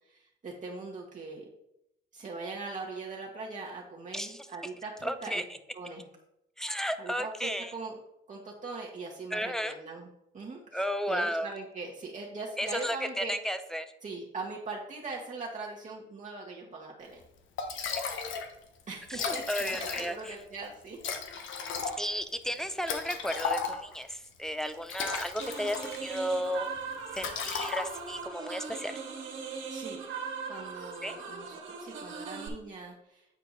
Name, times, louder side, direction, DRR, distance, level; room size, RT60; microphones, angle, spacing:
voice 1, 0.1-1.5 2.1-5.4 5.7-6.1 7.0-8.0 8.3-10.1 10.3-13.3 14.0-17.2 18.9-21.0 21.8-22.0 29.5-30.0 30.4-33.4, right 3 dB, 40° right, -3 dB, 1.3 m, -41 dB
voice 2, 4.1-4.5 5.0-5.4 6.6-7.7 9.3-9.8 10.7-11.5 12.6-13.9 19.1-20.4 22.0-26.7 27.1-28.9 31.0-31.2, equal, ahead, 10 dB, 0.6 m, -33 dB
Liquid, 17.2-17.3 17.6-18.5 18.8-18.9 19.1-20.3 21.0-24.0 24.7-26.2 26.5-26.8 27.1-28.2, left 5 dB, 80° left, 1.0 m, -35 dB
sound 1, 25.4-32.5, right 5 dB, 80° right, 1.6 m, -40 dB
8.6 x 4.5 x 4.0 m, 0.83 s
cardioid pair, 90°, 20 cm